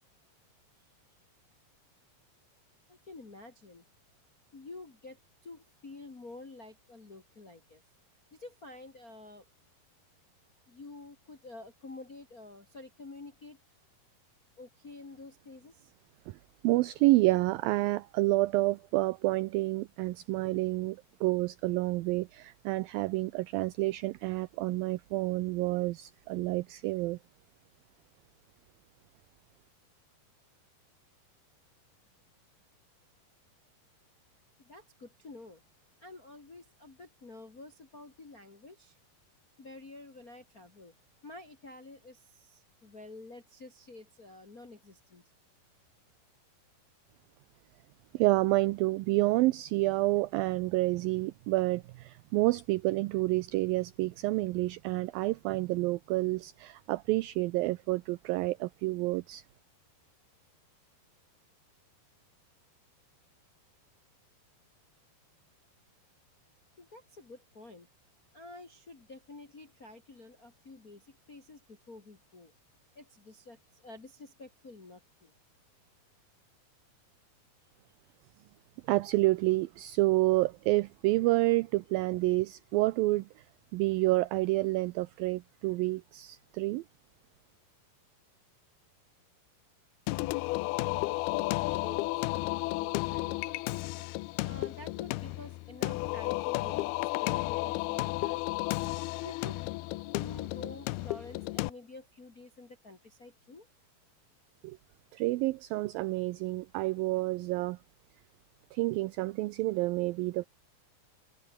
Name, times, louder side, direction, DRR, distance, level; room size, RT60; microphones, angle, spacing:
voice 1, 2.9-3.9 4.5-7.8 8.3-9.4 10.7-13.6 14.6-15.9 34.6-35.6 36.0-39.0 39.6-40.9 41.2-45.2 66.8-67.9 68.3-72.5 72.9-75.3 91.2-93.7 94.4-98.4 99.2-99.8 100.1-103.7, left 2 dB, 25° left, 2.6 m, -49 dB
voice 2, 16.6-27.2 48.1-59.4 78.9-83.3 83.7-86.8 104.6-104.8 105.1-107.8 108.7-110.5, right 20 dB, 80° right, 2.2 m, -29 dB
Singing, 90.1-101.7, left 20 dB, 80° left, 2.5 m, -33 dB
omnidirectional pair, 4.6 m